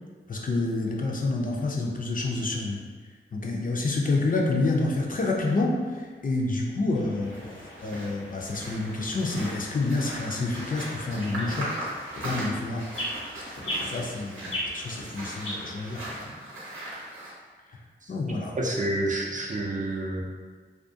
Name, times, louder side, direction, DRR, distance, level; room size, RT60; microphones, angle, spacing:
voice 1, 0.3-2.8 3.3-11.7 12.2-12.9 13.8-16.2 17.7-17.8 18.1-18.6, left 2 dB, 45° left, -1 dB, 0.4 m, -28 dB
sound 1, 6.9-16.2, equal, 85° left, 0.6 m, -39 dB
sound 2, 7.2-17.3, right 1 dB, 85° right, 0.8 m, -39 dB
voice 2, 18.5-20.2, right 1 dB, 40° right, -1 dB, 0.4 m, -28 dB
2.3 x 2.2 x 2.6 m, 1.5 s
cardioid pair, 45°, 20 cm